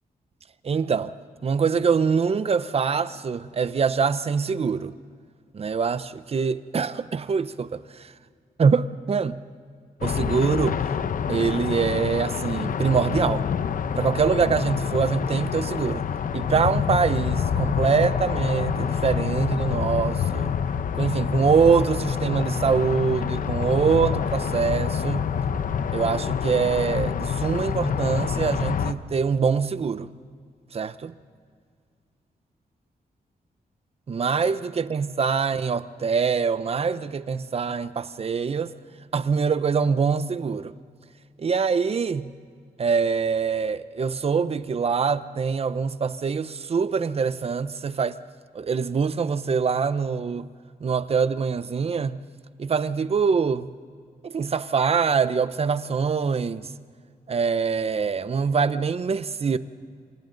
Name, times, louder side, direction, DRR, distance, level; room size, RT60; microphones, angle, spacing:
voice 1, 0.6-1.1 1.4-4.9 5.5-8.1 8.6-9.4 10.0-10.8 11.3-13.4 14.0-16.0 16.3-20.5 20.9-25.3 25.9-30.1 30.7-31.1 34.1-38.7 39.1-40.7 41.4-42.3 42.8-48.2 48.5-50.5 50.8-52.2 52.6-53.7 54.2-56.7 57.3-59.6, right 5 dB, 40° right, 0.7 m, -24 dB
sound 1, 10.0-28.9, left 7 dB, 60° left, 0.8 m, -27 dB
28.0 x 27.0 x 3.9 m
wide cardioid pair, 140°, 15 cm